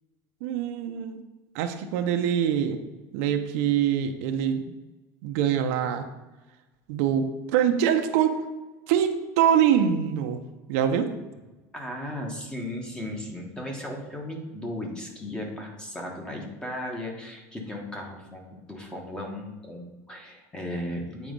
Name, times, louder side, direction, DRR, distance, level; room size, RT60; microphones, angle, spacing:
voice 1, 0.4-1.2 1.5-2.8 3.1-4.6 5.2-6.0 6.9-8.4 8.9-10.4 10.7-11.1, right 9 dB, 70° right, 6 dB, 0.7 m, -24 dB
voice 2, 11.7-21.3, left 1 dB, 10° left, 1 dB, 1.3 m, -36 dB
8.6 x 4.1 x 5.3 m, 1.1 s
cardioid pair, 160°, 8 cm